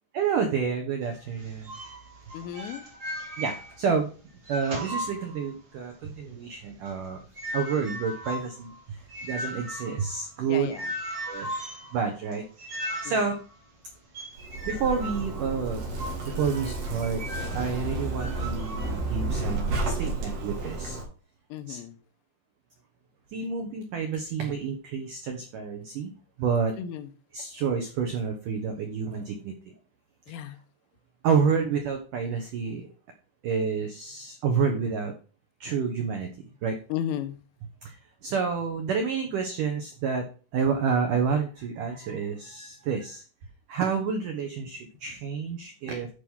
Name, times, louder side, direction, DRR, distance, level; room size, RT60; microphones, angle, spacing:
voice 1, 0.1-1.7 3.4-4.1 4.5-7.2 7.5-9.0 9.2-10.7 11.3-11.5 11.9-12.7 13.0-13.3 14.7-15.8 16.2-17.2 17.5-21.0 21.7-21.8 23.3-26.1 26.4-26.7 27.3-29.5 30.3-30.4 31.2-32.9 33.4-35.1 35.6-36.3 36.6-36.8 37.8-38.0 38.2-40.3 40.5-43.2 43.7-46.1, right 6 dB, 80° right, 1.8 m, -29 dB
sound 1, 1.0-4.0 4.3-5.7 6.1-17.6 18.2-18.9, equal, 35° right, 1.8 m, -38 dB
voice 2, 2.3-2.8 10.5-10.9 13.1-13.2 21.5-22.0 26.8-27.1 30.3-30.6 36.9-37.4, left 10 dB, 85° left, 3.5 m, -34 dB
Zipper (clothing), 14.4-21.0, right 2 dB, 60° right, 4.9 m, -31 dB
11.5 x 4.9 x 5.6 m
omnidirectional pair, 5.7 m